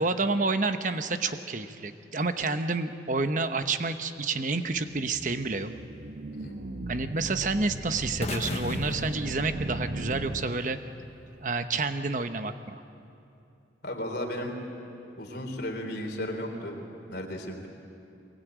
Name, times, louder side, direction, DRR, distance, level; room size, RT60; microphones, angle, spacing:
voice 1, 0.0-5.7 6.9-10.8 11.4-12.8, right 3 dB, 45° right, 9 dB, 0.9 m, -29 dB
sound 1, 4.7-11.1, right 1 dB, 65° right, 1.1 m, -37 dB
sound 2, 8.2-10.3, left 2 dB, 35° left, 0.9 m, -37 dB
voice 2, 13.8-14.5 15.2-16.8 17.1-17.7, left 1 dB, 60° left, 2 dB, 3.7 m, -34 dB
24.0 x 21.0 x 9.1 m, 2.7 s
head